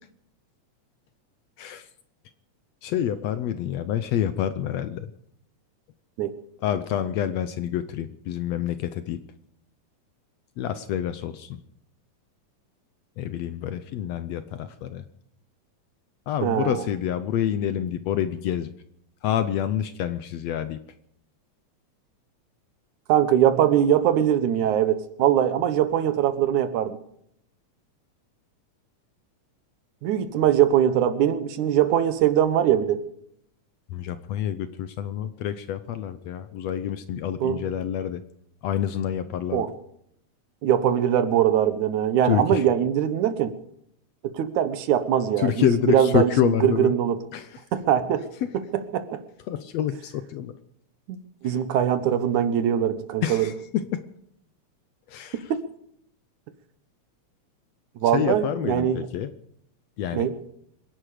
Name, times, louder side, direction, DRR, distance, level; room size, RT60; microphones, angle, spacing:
voice 1, 2.8-5.1 6.6-9.2 10.6-11.6 13.2-15.0 16.3-18.7 19.2-20.8 33.9-38.2 38.6-39.7 42.2-42.7 45.4-46.9 47.3-47.6 48.4-48.5 49.5-50.5 51.4-51.6 53.2-54.0 55.1-55.5 58.1-59.3 60.0-60.3, left 10 dB, 70° left, 12 dB, 1.8 m, -27 dB
voice 2, 16.4-16.9 23.1-27.0 30.0-33.0 37.4-37.6 39.5-39.7 40.6-43.5 44.2-47.2 47.7-48.3 48.7-49.2 51.1-51.2 51.4-53.5 55.5-55.6 58.0-59.0 60.1-60.3, right 10 dB, 90° right, 11 dB, 2.6 m, -22 dB
26.0 x 11.0 x 5.0 m, 0.72 s
omnidirectional pair, 3.3 m